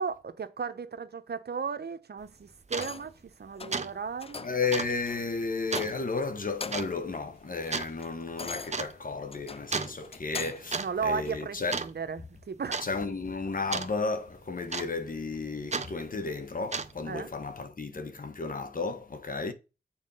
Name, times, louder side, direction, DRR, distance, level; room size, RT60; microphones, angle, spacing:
voice 1, 0.0-3.1 3.4-4.5 10.7-12.8 17.0-17.3, right 5 dB, 60° right, 1.0 m, -35 dB
sound 1, 2.2-2.3 2.7-2.9 3.3-3.5 3.7-4.2 4.7-4.9 5.7-5.9 6.7-6.9 7.7-7.9 8.7-8.9 9.7-10.0 10.5-10.9 11.1-11.4 11.7-12.2 12.7-12.9 13.7-13.9 14.7-15.1 15.7-15.9 16.6-17.1, right 4 dB, 35° right, 0.9 m, -33 dB
sound 2, 2.7-3.2 3.6-3.8 4.2-4.6 5.1-5.2 5.7-6.2 6.5-7.0 7.4-10.7 11.2-11.4, left 4 dB, 30° left, 0.5 m, -42 dB
voice 2, 4.4-11.8 12.8-19.5, left 4 dB, 45° left, 1.4 m, -33 dB
7.2 x 4.6 x 5.7 m
cardioid pair, 55°, 19 cm